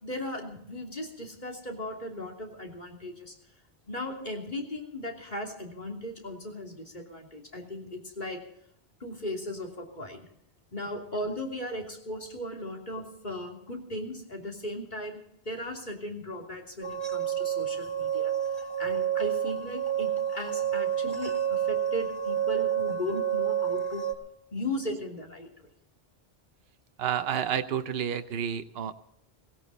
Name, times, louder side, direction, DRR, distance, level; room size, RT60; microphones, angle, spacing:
voice 1, 0.0-3.3 3.9-8.4 9.0-10.2 10.7-24.1 24.5-25.5, left 1 dB, 45° left, 1 dB, 3.1 m, -37 dB
sound 1, 16.8-24.1, right 9 dB, 25° right, 2.4 m, -29 dB
voice 2, 27.0-28.9, right 8 dB, 70° right, 9 dB, 1.0 m, -30 dB
17.5 x 16.5 x 4.1 m, 0.73 s
omnidirectional pair, 1.1 m